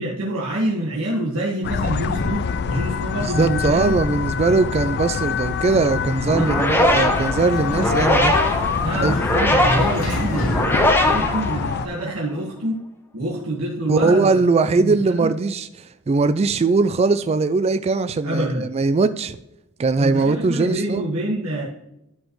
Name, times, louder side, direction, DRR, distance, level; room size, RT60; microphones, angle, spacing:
voice 1, 0.0-3.9 6.0-6.5 8.8-12.8 13.1-14.4 14.7-15.3 18.2-18.6 20.0-21.6, right 1 dB, 90° right, 1.8 m, -26 dB
sound 1, 1.6-11.9, left 6 dB, 50° left, 0.4 m, -25 dB
voice 2, 3.1-8.4 9.0-9.2 13.9-19.4 19.8-21.1, right 3 dB, 30° right, 0.3 m, -20 dB
sound 2, 6.3-12.1, left 1 dB, 10° left, 1.1 m, -21 dB
Sliding door, 6.6-11.8, equal, 75° left, 2.2 m, -33 dB
12.5 x 5.2 x 3.2 m
head